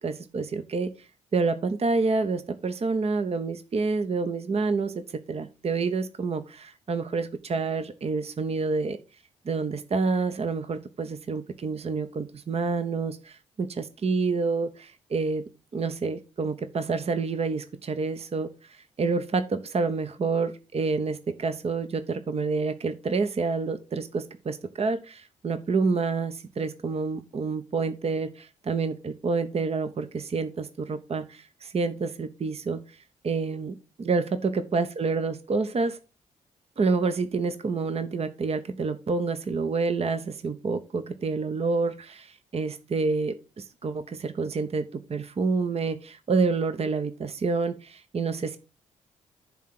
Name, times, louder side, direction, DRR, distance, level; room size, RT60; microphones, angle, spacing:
voice 1, 0.0-9.0 9.4-13.7 14.0-33.0 33.2-36.0 36.8-48.6, right 4 dB, 40° right, 10 dB, 0.9 m, -28 dB
10.5 x 3.7 x 6.0 m, 0.31 s
hypercardioid pair, 40°, 16 cm